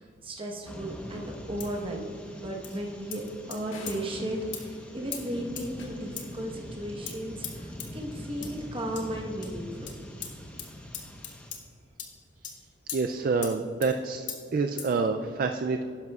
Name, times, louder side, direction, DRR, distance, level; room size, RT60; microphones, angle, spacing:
voice 1, 0.2-3.2 3.5-7.7 7.9-9.9, right 1 dB, 25° right, 0 dB, 1.2 m, -35 dB
sound 1, 0.6-11.5, equal, 5° left, 1.0 m, -43 dB
sound 2, 1.6-1.8 2.6-2.8 3.1-3.6 3.9-4.0 4.5-4.7 5.1-5.2 5.6-5.9 6.2-6.3 7.1-7.2 7.4-7.5 7.8-7.9 8.4-8.5 9.0-9.1 9.4-9.5 9.9-10.0 10.2-10.3 10.6-10.7 10.9-11.6 12.0-12.1 12.4-12.6 12.9-13.0 13.4-13.6 13.8-13.9 14.3-14.4 14.8-14.9, left 8 dB, 60° left, 1.3 m, -38 dB
sound 3, 3.7-5.9, left 2 dB, 85° left, 1.8 m, -49 dB
voice 2, 12.9-15.8, right 4 dB, 45° right, 6 dB, 0.3 m, -28 dB
12.0 x 10.5 x 2.4 m, 2.5 s
head